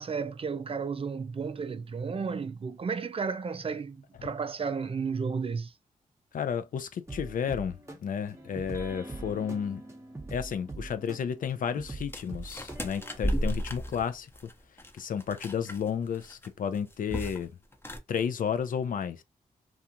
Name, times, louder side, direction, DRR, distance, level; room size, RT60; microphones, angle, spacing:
voice 1, 0.0-5.7, right 5 dB, 40° right, 0.4 m, -33 dB
voice 2, 6.3-9.8 10.3-14.3 14.9-17.5 18.1-19.2, left 7 dB, 60° left, 0.4 m, -32 dB
sound 1, 7.1-13.2, right 2 dB, 20° right, 0.8 m, -42 dB
sound 2, 12.1-16.5 16.8-17.5 17.7-18.0, equal, 15° left, 0.7 m, -33 dB
2.4 x 2.3 x 2.8 m
supercardioid pair, 40°, 16 cm